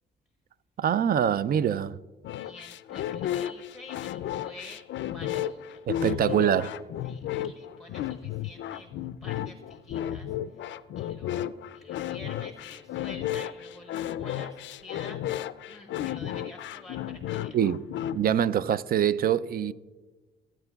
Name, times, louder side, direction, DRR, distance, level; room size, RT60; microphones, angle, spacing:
voice 1, 0.8-1.9 5.9-6.7 17.5-17.8 18.1-19.7, right 9 dB, 50° right, 0.4 m, -24 dB
sound 1, 2.2-18.4, left 11 dB, 70° left, 0.4 m, -33 dB
voice 2, 2.4-6.4 7.0-15.2 15.7-17.6, left 2 dB, ahead, 0.9 m, -49 dB
17.5 x 9.0 x 2.3 m
cardioid pair, 90°, 20 cm